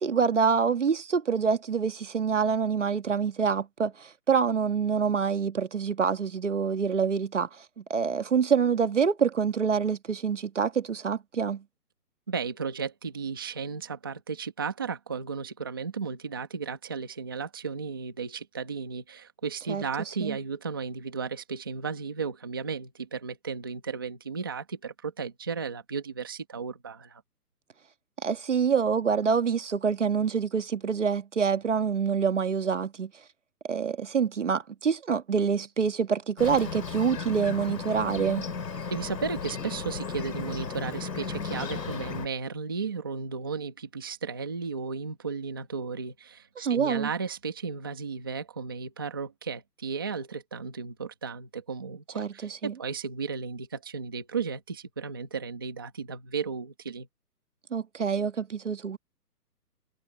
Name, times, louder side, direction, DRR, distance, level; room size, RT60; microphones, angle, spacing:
voice 1, 0.0-7.6 7.9-11.6 19.7-19.8 20.2-20.4 28.2-33.1 33.6-38.5 46.6-47.1 52.2-52.7 57.7-59.0, right 6 dB, 45° right, 1.7 m, -26 dB
voice 2, 12.3-27.2 38.9-57.1, right 5 dB, 15° right, 1.2 m, -34 dB
Bird, 36.4-42.3, left 5 dB, 80° left, 2.6 m, -35 dB
hypercardioid pair, 180°, 49 cm